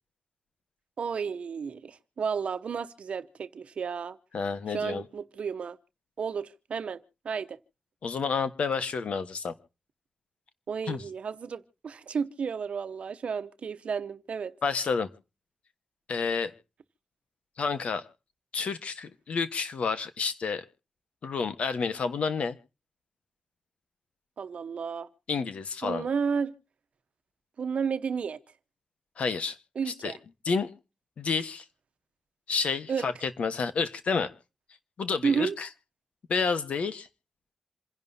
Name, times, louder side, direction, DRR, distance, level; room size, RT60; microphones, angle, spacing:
voice 1, 1.0-4.2 4.7-5.8 6.2-7.6 10.7-14.5 24.4-25.1 25.8-26.5 27.6-28.4 29.8-30.2 32.9-33.1 35.2-35.6, right 6 dB, 70° right, 0.9 m, -32 dB
voice 2, 4.3-5.1 8.0-9.5 10.9-11.0 14.6-15.1 16.1-16.5 17.6-18.0 18.5-20.6 21.2-22.6 25.3-26.1 29.2-29.6 29.9-30.1 30.4-30.7 31.2-31.6 32.5-34.3 35.0-35.7 36.3-37.1, left 5 dB, 80° left, 1.3 m, -29 dB
27.5 x 11.0 x 2.7 m
wide cardioid pair, 120°, 2 cm